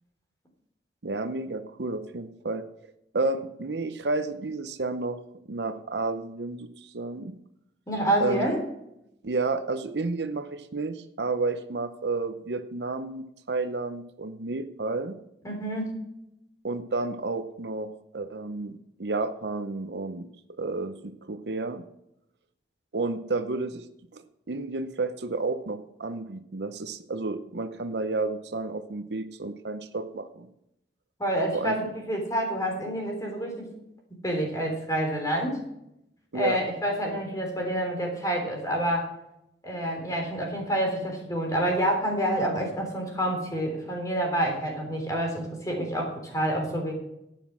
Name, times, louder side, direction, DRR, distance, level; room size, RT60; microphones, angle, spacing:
voice 1, 1.0-2.7 3.1-5.2 5.5-7.3 8.2-8.5 9.2-15.2 16.6-17.9 18.1-20.3 20.6-21.8 22.9-23.8 24.1-30.5 31.5-31.7 36.3-36.6, right 3 dB, 65° right, 10 dB, 0.7 m, -31 dB
voice 2, 7.9-8.6 15.4-15.9 31.2-33.7 34.2-35.6 36.3-39.1 39.6-46.9, right 1 dB, 20° left, 1 dB, 3.6 m, -28 dB
11.5 x 9.2 x 6.1 m, 0.81 s
head